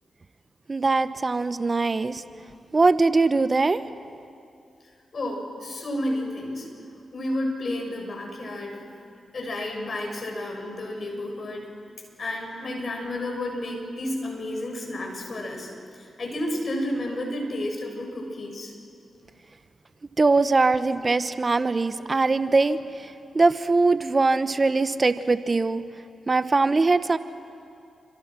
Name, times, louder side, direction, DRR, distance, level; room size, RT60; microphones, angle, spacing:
voice 1, 0.7-2.2 2.7-3.8 20.2-22.8 23.3-25.8 26.3-27.2, right 3 dB, 40° right, 12 dB, 1.0 m, -21 dB
voice 2, 5.1-6.7 7.1-8.8 9.3-11.7 12.2-15.7 16.0-18.7, left 1 dB, 55° left, 2 dB, 6.8 m, -31 dB
29.0 x 26.0 x 6.2 m, 2.5 s
supercardioid pair, 45°, 0 cm